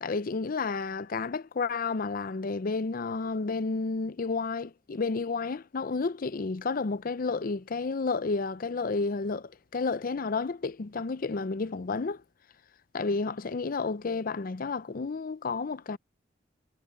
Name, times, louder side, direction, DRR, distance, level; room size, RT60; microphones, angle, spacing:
voice 1, 0.0-12.2 12.9-16.0, left 4 dB, 50° left, 0.5 m, -31 dB
head